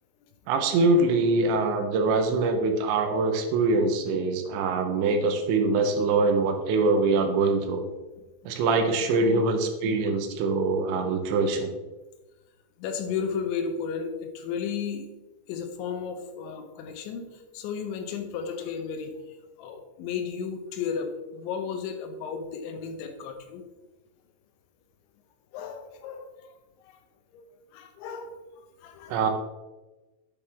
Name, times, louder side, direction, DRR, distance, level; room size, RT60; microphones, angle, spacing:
voice 1, 0.5-7.9 8.5-11.7 29.1-29.3, right 3 dB, 85° right, 6 dB, 3.2 m, -24 dB
voice 2, 12.8-15.1 15.5-23.6 25.5-26.6 26.8-27.0 27.3-27.5 27.7-29.2, left 6 dB, 85° left, 6 dB, 3.3 m, -34 dB
9.1 x 8.5 x 3.5 m, 1.1 s
omnidirectional pair, 5.2 m